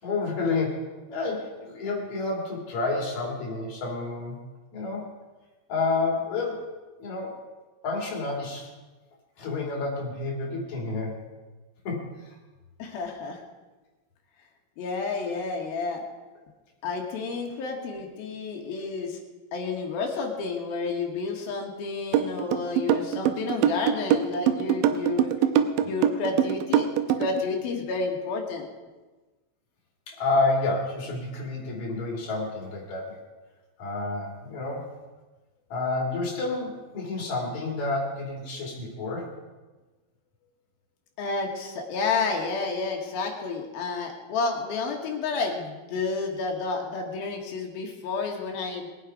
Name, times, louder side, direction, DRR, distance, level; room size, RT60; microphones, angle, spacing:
voice 1, 0.0-4.4 4.7-5.1 5.7-6.7 7.0-7.4 7.8-8.7 9.4-11.3 11.8-12.1 30.1-33.2 33.8-34.8 35.7-39.3, left 3 dB, 40° left, -2 dB, 3.8 m, -29 dB
voice 2, 12.8-13.4 14.8-16.0 16.8-19.2 19.5-25.3 25.8-28.7 41.2-48.9, left 4 dB, 60° left, 1 dB, 2.9 m, -30 dB
sound 1, 22.1-27.4, right 10 dB, 80° right, 2.9 m, -23 dB
21.0 x 9.0 x 4.8 m, 1.2 s
omnidirectional pair, 5.5 m